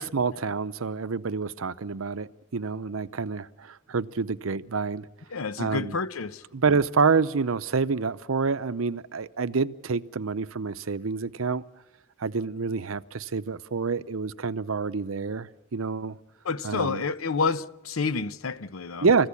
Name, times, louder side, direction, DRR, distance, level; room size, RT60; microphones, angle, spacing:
voice 1, 0.0-5.1 5.6-6.0 6.5-11.6 12.2-16.2 16.6-17.0 19.0-19.3, right 4 dB, 75° right, 0.7 m, -27 dB
voice 2, 5.3-6.4 16.4-19.1, left 4 dB, 85° left, 0.8 m, -29 dB
29.5 x 15.0 x 8.5 m
head